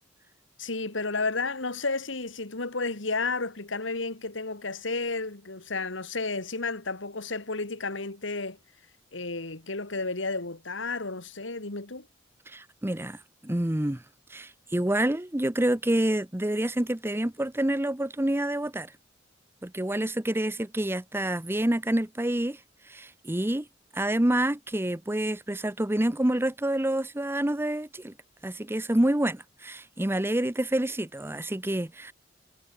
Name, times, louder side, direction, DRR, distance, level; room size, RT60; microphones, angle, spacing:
voice 1, 0.6-8.6 9.1-12.1, left 3 dB, 70° left, 2.3 m, -32 dB
voice 2, 12.5-14.0 14.3-18.9 19.6-22.6 22.9-23.7 23.9-28.1 28.4-32.1, right 1 dB, 10° right, 0.8 m, -27 dB
head